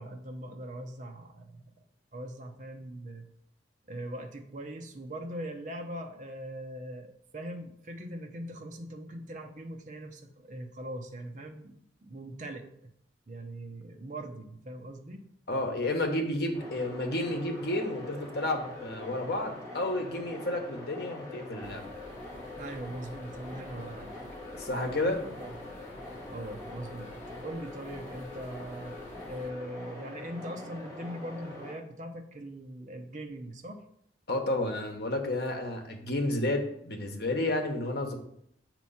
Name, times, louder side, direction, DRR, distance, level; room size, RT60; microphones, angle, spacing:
voice 1, 0.0-1.8 2.1-3.3 3.9-12.9 13.3-15.3 22.6-24.2 24.7-25.6 26.3-27.1 27.4-29.0 29.3-33.8, right 1 dB, 40° right, 3 dB, 0.7 m, -41 dB
voice 2, 15.5-21.8 23.8-23.9 24.6-25.2 34.3-38.2, left 1 dB, 60° left, 3 dB, 1.0 m, -31 dB
sound 1, 16.5-31.7, left 2 dB, ahead, 2.4 m, -44 dB
sound 2, 21.6-29.5, equal, 40° left, 0.8 m, -51 dB
7.4 x 3.0 x 5.6 m, 0.71 s
head